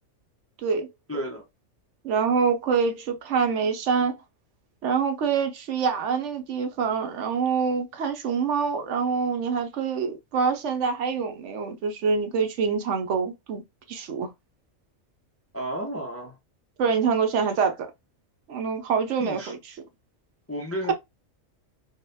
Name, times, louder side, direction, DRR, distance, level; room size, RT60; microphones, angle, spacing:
voice 1, 1.1-1.4 15.5-16.3 19.2-19.5 20.5-20.9, equal, 20° left, 0.4 m, -32 dB
voice 2, 2.0-4.1 4.8-13.6 13.9-14.3 16.8-17.9 18.5-19.6 20.9-21.0, right 6 dB, 70° right, 0.9 m, -25 dB
3.8 x 2.1 x 2.6 m
omnidirectional pair, 1.3 m